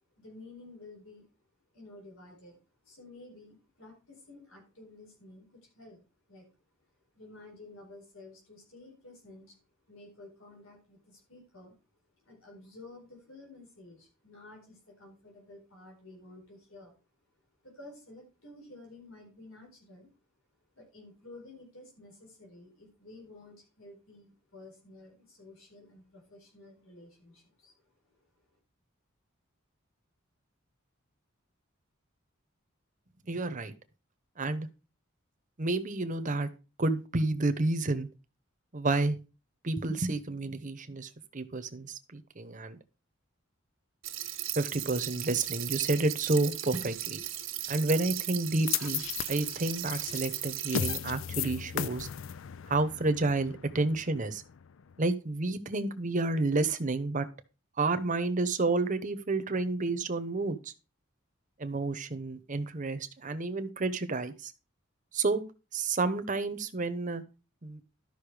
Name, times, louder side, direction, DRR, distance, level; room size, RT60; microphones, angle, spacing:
voice 1, 0.1-1.3 1.7-2.6 2.8-6.0 6.3-6.5 7.1-11.8 12.2-16.9 17.6-20.1 20.8-27.8 28.1-28.6, left 2 dB, 90° left, 0 dB, 4.3 m, -52 dB
voice 2, 33.3-33.7 34.4-34.7 35.6-36.5 36.8-38.1 38.7-39.2 39.6-42.8 44.6-47.2 47.7-49.0 49.3-52.1 52.7-54.4 55.0-57.3 57.8-60.7 61.6-64.5 65.1-65.4 65.7-67.2 67.6-67.8, right 3 dB, 40° right, 11 dB, 0.9 m, -30 dB
sound 1, 44.0-51.0, right 13 dB, 75° right, 1.3 m, -37 dB
sound 2, 48.7-54.9, left 9 dB, 70° left, 0.4 m, -36 dB
12.0 x 5.6 x 4.9 m, 0.31 s
head